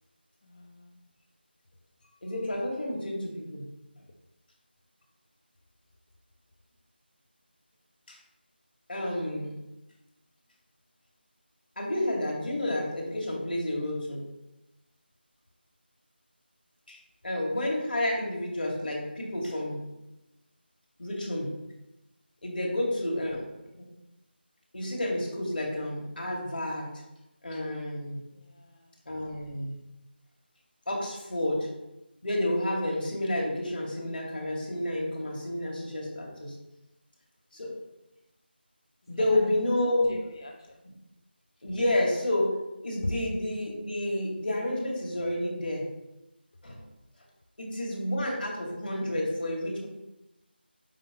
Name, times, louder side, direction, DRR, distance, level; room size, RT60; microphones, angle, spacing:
voice 1, 0.4-1.0 28.3-28.9 39.1-39.5 40.1-40.8 43.0-43.1, left 2 dB, 25° left, 2 dB, 0.4 m, -40 dB
voice 2, 2.2-3.6 8.1-8.2 8.9-9.5 11.8-14.2 16.9-17.0 17.2-19.8 21.0-21.5 22.4-23.4 23.8-23.9 24.7-26.9 27.4-28.2 29.1-29.8 30.9-31.7 32.2-36.5 37.5-37.7 39.1-40.1 41.6-42.6 42.8-45.8 46.6-46.8 47.6-49.9, left 1 dB, 60° left, -1 dB, 2.3 m, -30 dB
8.3 x 4.5 x 3.1 m, 0.95 s
figure-of-eight pair, 170°, 6 cm